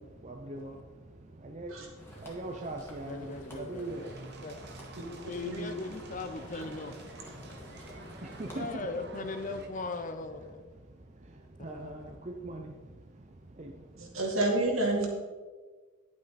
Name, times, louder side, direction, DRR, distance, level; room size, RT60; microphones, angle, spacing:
voice 1, 0.2-0.7 1.4-1.7 2.2-4.0 8.4-8.7 11.6-12.0 12.4-12.7 13.6-13.7, right 2 dB, 35° right, 2 dB, 0.6 m, -39 dB
sound 1, 2.0-8.7, equal, 10° left, 2.0 m, -50 dB
voice 2, 3.1-4.6 5.2-6.9 8.5-10.6 11.7-12.1, left 3 dB, 35° left, 8 dB, 0.6 m, -39 dB
sound 2, 3.8-9.7, right 2 dB, 50° right, 1.1 m, -49 dB
voice 3, 5.4-5.8 6.5-6.7 14.0-15.1, right 2 dB, 70° right, -1 dB, 2.5 m, -29 dB
11.0 x 8.5 x 4.2 m, 1.4 s
head